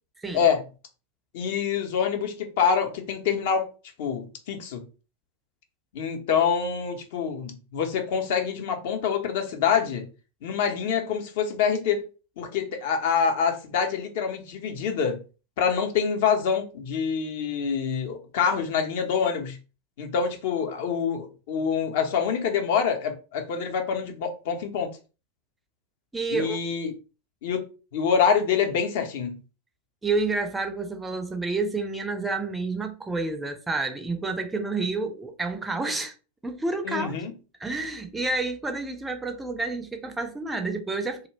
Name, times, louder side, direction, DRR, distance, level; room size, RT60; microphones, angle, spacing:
voice 1, 1.3-3.7 4.0-4.8 5.9-10.1 10.4-12.0 12.4-15.2 15.6-19.6 20.0-24.9 26.3-26.9 27.4-27.7 27.9-29.4 36.8-37.3, left 6 dB, 50° left, 0.6 m, -26 dB
voice 2, 26.1-26.6 30.0-36.1 36.4-37.1 37.6-41.3, right 3 dB, 10° right, 0.4 m, -29 dB
2.3 x 2.0 x 3.2 m
figure-of-eight pair, 90°, 0 cm